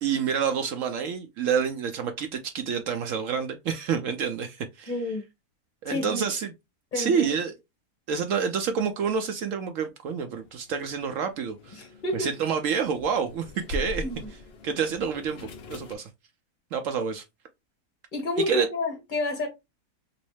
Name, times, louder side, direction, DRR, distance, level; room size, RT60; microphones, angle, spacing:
voice 1, 0.0-4.9 5.8-6.5 6.9-7.5 8.1-11.8 12.1-14.0 14.6-16.1 16.7-17.2 18.5-18.7, right 6 dB, 70° right, 0.7 m, -28 dB
voice 2, 4.9-5.2 5.9-6.2 6.9-7.3 11.8-12.3 14.0-14.3 18.1-19.5, left 2 dB, 30° left, 1.3 m, -29 dB
sound 1, 10.3-15.9, left 1 dB, 55° left, 0.7 m, -41 dB
3.1 x 3.0 x 3.2 m
omnidirectional pair, 1.8 m